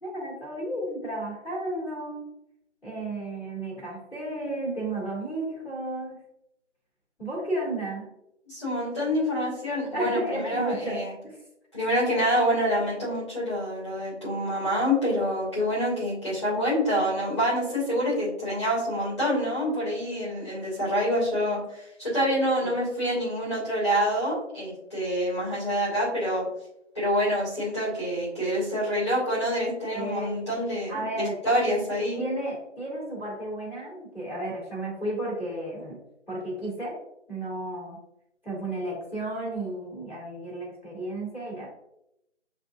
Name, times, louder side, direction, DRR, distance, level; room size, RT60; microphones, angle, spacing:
voice 1, 0.0-2.2 2.8-6.2 7.2-8.1 9.9-11.4 29.9-30.4 30.9-31.4 32.2-36.0 36.3-37.0 37.3-38.0 38.4-41.7, right 1 dB, ahead, -26 dB, 1.1 m, -33 dB
voice 2, 8.5-11.1 11.7-26.5 26.9-32.2, equal, 25° left, -8 dB, 1.2 m, -27 dB
6.7 x 2.6 x 2.3 m, 0.83 s
figure-of-eight pair, 170°, 36 cm